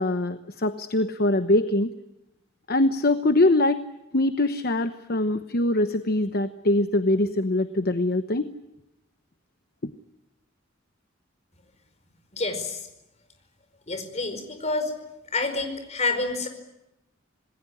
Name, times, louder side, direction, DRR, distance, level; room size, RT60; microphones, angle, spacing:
voice 1, 0.0-1.9 2.7-3.8 4.1-8.5, left 2 dB, 50° left, 10 dB, 1.0 m, -23 dB
voice 2, 12.3-12.8 13.9-14.9 15.3-16.5, left 3 dB, 35° left, 7 dB, 4.9 m, -28 dB
27.0 x 20.0 x 10.0 m, 0.90 s
head